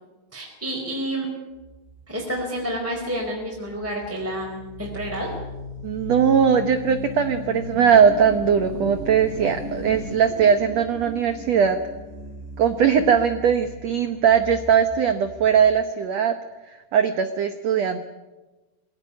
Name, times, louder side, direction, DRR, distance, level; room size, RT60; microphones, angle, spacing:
voice 1, 0.3-1.3 2.1-5.3, right 1 dB, 5° right, -3 dB, 4.1 m, -29 dB
sound 1, 1.6-15.8, left 2 dB, 20° right, 2.9 m, -37 dB
voice 2, 5.8-11.8 12.6-16.4 16.9-18.0, right 7 dB, 80° right, 9 dB, 1.5 m, -20 dB
22.5 x 17.5 x 9.7 m, 1.1 s
omnidirectional pair, 4.6 m